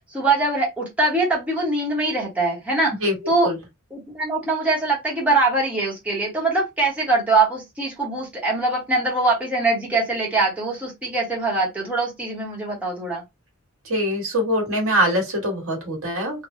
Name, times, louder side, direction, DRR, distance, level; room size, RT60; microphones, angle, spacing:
voice 1, 0.1-3.0 3.3-3.5 3.9-13.2, right 2 dB, 5° right, 1.0 m, -22 dB
voice 2, 13.8-16.5, equal, 75° right, 1.4 m, -23 dB
3.2 x 2.2 x 2.6 m
head